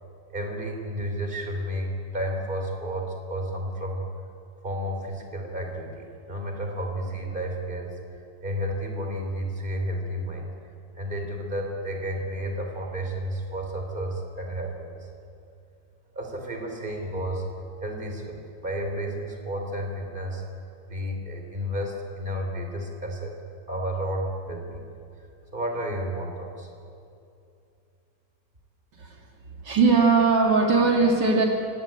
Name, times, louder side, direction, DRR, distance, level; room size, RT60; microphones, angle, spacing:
voice 1, 0.3-4.1 4.6-8.0 8.4-10.5 10.9-15.1 16.1-17.5 17.8-20.4 20.9-23.3 23.7-24.9 25.5-26.7, equal, 25° right, 2 dB, 4.1 m, -31 dB
voice 2, 29.6-31.5, right 4 dB, 75° right, 0 dB, 3.1 m, -20 dB
26.0 x 20.0 x 9.0 m, 2.6 s
omnidirectional pair, 1.9 m